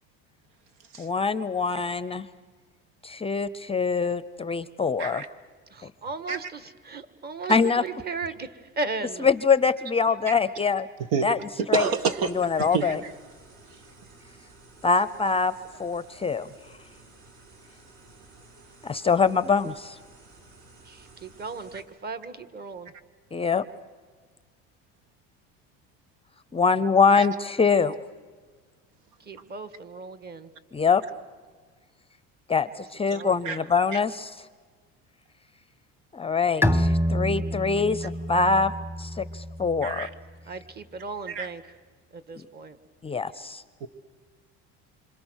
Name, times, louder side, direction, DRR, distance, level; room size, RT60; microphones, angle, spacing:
voice 1, 1.0-2.2 3.0-5.3 7.5-7.8 9.2-10.9 11.2-11.4 11.7-11.9 12.3-13.0 14.8-15.5 15.8-16.5 18.8-20.0 23.3-23.6 26.5-28.0 30.7-31.0 32.5-34.4 36.1-38.7 39.0-40.1 43.0-43.6, left 5 dB, 15° left, 16 dB, 0.6 m, -24 dB
voice 2, 5.7-9.3 20.8-22.9 29.2-30.5 33.1-33.6 40.4-41.6 42.1-42.8, right 3 dB, 30° right, 12 dB, 1.6 m, -36 dB
voice 3, 11.6-13.0 27.2-27.3 33.4-33.6 33.9-34.0 39.8-40.1 41.3-41.5 43.8-43.9, right 6 dB, 75° right, 10 dB, 1.9 m, -28 dB
sound 1, 11.8-21.8, right 3 dB, 60° right, 7.4 m, -53 dB
Bowed string instrument, 36.6-40.1, equal, 5° right, 1.1 m, -27 dB
27.0 x 26.5 x 6.4 m, 1.5 s
cardioid pair, 120°, 33 cm